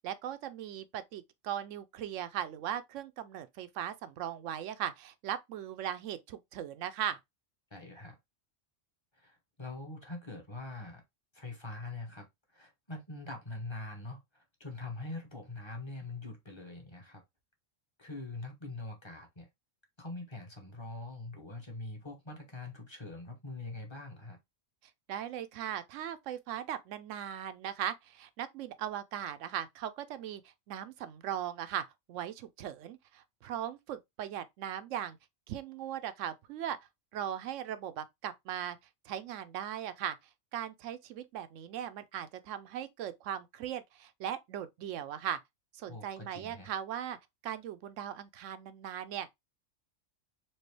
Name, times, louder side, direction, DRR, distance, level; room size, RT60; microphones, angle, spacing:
voice 1, 0.0-7.2 25.1-35.2 35.5-36.8 37.1-38.8 39.1-40.2 40.5-45.4 45.7-47.2 47.4-49.3, right 10 dB, 80° right, 0.9 m, -38 dB
voice 2, 7.7-8.2 9.1-11.0 11.3-12.3 12.5-17.2 18.0-19.5 20.0-24.4 45.9-46.7, left 2 dB, 25° left, 1.1 m, -43 dB
4.4 x 2.7 x 3.2 m
omnidirectional pair, 1.3 m